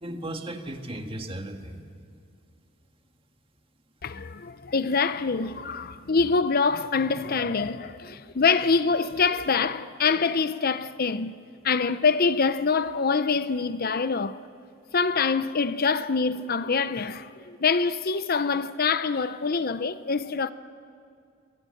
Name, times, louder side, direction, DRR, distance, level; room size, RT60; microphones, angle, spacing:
voice 1, 0.0-1.8 4.1-4.3 6.1-6.2, right 1 dB, 25° right, 1.8 m, -36 dB
voice 2, 4.0-11.4 11.6-14.4 14.9-20.5, left 5 dB, 45° left, 0.7 m, -25 dB
29.5 x 23.0 x 7.8 m
head